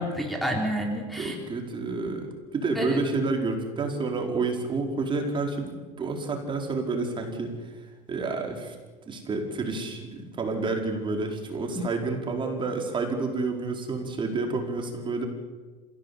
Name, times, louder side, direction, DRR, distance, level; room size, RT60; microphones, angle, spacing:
voice 1, 0.0-1.4 2.8-3.0 11.8-11.9, equal, ahead, 0 dB, 3.6 m, -29 dB
voice 2, 1.1-7.7 8.1-8.7 9.1-15.3, right 3 dB, 30° right, 3 dB, 4.9 m, -29 dB
28.0 x 16.5 x 8.6 m, 1.3 s
supercardioid pair, 115°, 17 cm